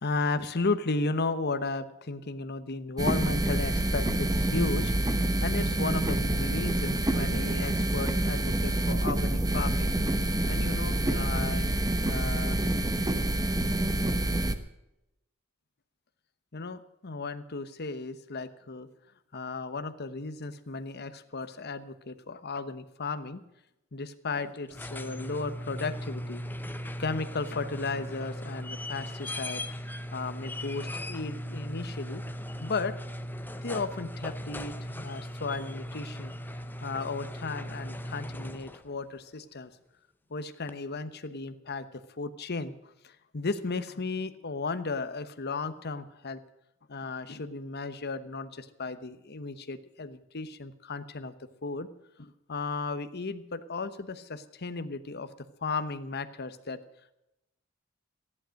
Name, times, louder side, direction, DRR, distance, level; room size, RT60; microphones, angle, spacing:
voice 1, 0.0-9.9 10.4-12.6 16.5-18.9 19.3-23.4 23.9-26.4 27.0-29.6 30.1-32.2 32.6-32.9 33.6-36.3 36.8-39.7 40.3-41.9 42.2-46.4 46.9-51.3 51.6-51.9 52.2-55.3 55.6-56.8, left 3 dB, 50° left, 11 dB, 1.1 m, -35 dB
sound 1, 3.0-14.5, right 1 dB, 20° right, 1.1 m, -27 dB
sound 2, 24.6-38.9 40.7-40.8, equal, 10° left, 0.7 m, -38 dB
14.5 x 11.0 x 6.5 m, 0.88 s
head